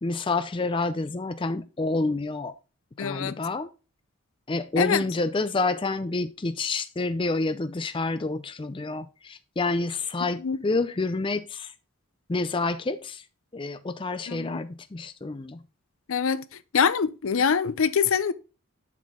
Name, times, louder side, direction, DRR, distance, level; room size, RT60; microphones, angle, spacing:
voice 1, 0.0-2.5 3.0-3.7 4.5-11.7 12.3-13.2 13.5-15.6, left 3 dB, 25° left, 0.4 m, -28 dB
voice 2, 3.0-3.4 4.8-5.0 10.4-10.6 14.3-14.6 16.1-16.4 16.7-18.3, left 6 dB, 70° left, 0.6 m, -24 dB
7.5 x 6.0 x 3.6 m
head